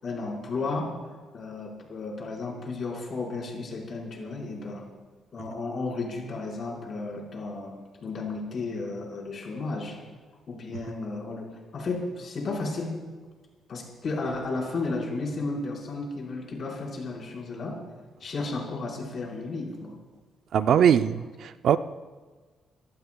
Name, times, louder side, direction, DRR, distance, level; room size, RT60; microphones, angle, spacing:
voice 1, 0.0-0.9 1.3-4.8 5.3-10.0 10.5-12.9 13.7-17.8 18.2-19.9, left 3 dB, 40° left, -2 dB, 4.7 m, -33 dB
voice 2, 20.5-21.8, right 8 dB, 55° right, 11 dB, 0.5 m, -21 dB
27.5 x 18.0 x 2.3 m, 1.4 s
cardioid pair, 170°, 0 cm